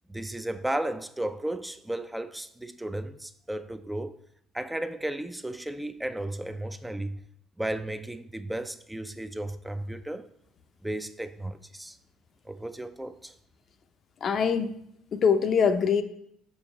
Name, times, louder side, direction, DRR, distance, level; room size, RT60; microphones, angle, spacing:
voice 1, 0.1-4.2 4.5-7.2 7.6-10.3 10.8-12.0 12.5-13.3, right 1 dB, 10° right, 0.4 m, -34 dB
voice 2, 14.2-14.7 15.1-16.0, left 6 dB, 50° left, 0.5 m, -23 dB
6.0 x 5.3 x 3.4 m
hypercardioid pair, 60°, 0 cm